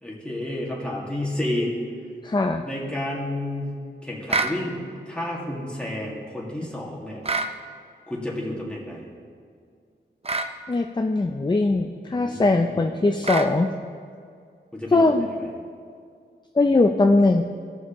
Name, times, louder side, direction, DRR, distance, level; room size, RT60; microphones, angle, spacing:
voice 1, 0.0-1.7 2.6-3.7 4.0-7.2 8.1-9.1 12.1-13.0 14.7-15.5, left 1 dB, 5° left, -4 dB, 2.0 m, -31 dB
voice 2, 2.2-2.6 10.7-13.7 14.9-15.3 16.6-17.4, left 2 dB, 25° left, 4 dB, 0.4 m, -20 dB
sound 1, 4.3-4.6 7.2-7.5 10.2-10.5 13.2-13.5, right 3 dB, 30° right, 0.5 m, -25 dB
17.0 x 6.3 x 3.0 m, 2.2 s
wide cardioid pair, 95°, 20 cm